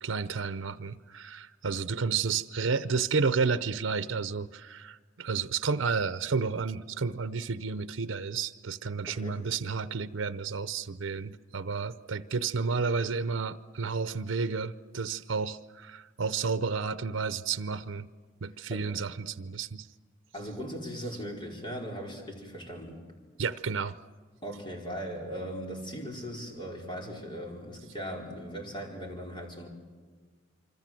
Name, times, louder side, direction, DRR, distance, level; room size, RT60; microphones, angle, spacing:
voice 1, 0.0-18.1 18.4-19.9 20.6-20.7 23.4-24.0, right 5 dB, 90° right, 14 dB, 0.7 m, -31 dB
voice 2, 9.1-9.4 18.7-18.9 20.3-23.0 24.4-29.7, equal, 25° left, 0 dB, 4.6 m, -39 dB
27.0 x 25.0 x 7.7 m, 1.5 s
head